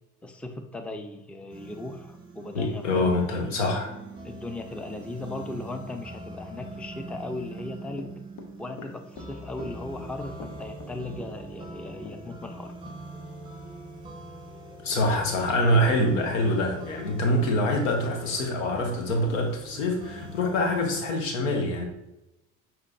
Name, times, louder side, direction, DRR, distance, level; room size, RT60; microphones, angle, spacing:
voice 1, 0.2-3.1 4.2-8.1 8.6-12.7, left 2 dB, 5° left, 6 dB, 0.5 m, -37 dB
sound 1, 1.5-21.1, right 1 dB, 10° right, 1.3 m, -43 dB
voice 2, 2.5-3.9 14.8-21.8, left 1 dB, 85° left, 2 dB, 1.0 m, -25 dB
Run / Walk footsteps, 7.6-12.6 12.9-13.0, left 5 dB, 60° left, 0.8 m, -45 dB
6.4 x 2.9 x 2.6 m, 0.92 s
hypercardioid pair, 65°, 37 cm